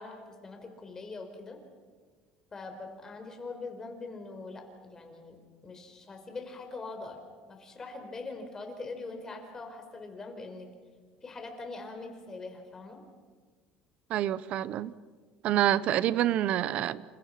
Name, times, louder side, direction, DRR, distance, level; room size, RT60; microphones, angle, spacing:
voice 1, 0.0-1.6 2.5-10.7 11.2-13.0, left 3 dB, 20° left, 4 dB, 4.8 m, -42 dB
voice 2, 14.1-14.9 15.4-17.0, right 12 dB, 50° right, 17 dB, 1.0 m, -27 dB
29.5 x 29.5 x 6.0 m, 1.5 s
cardioid pair, 155°, 3 cm